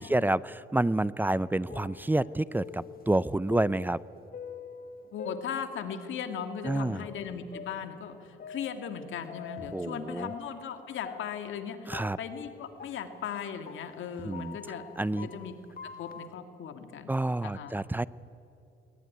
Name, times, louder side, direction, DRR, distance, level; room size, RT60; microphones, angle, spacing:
voice 1, 0.0-4.0 6.6-7.1 9.7-10.3 11.9-12.2 14.2-14.6 15.0-15.3 17.1-18.1, right 1 dB, 10° right, 19 dB, 0.5 m, -28 dB
sound 1, 1.3-6.1 6.6-9.9 10.2-16.3, left 6 dB, 50° left, 1.5 m, -46 dB
voice 2, 5.1-14.8 15.2-15.6 15.8-17.2 17.4-17.7, left 7 dB, 80° left, 7 dB, 2.0 m, -38 dB
21.5 x 20.0 x 9.7 m, 2.8 s
cardioid pair, 90°, 20 cm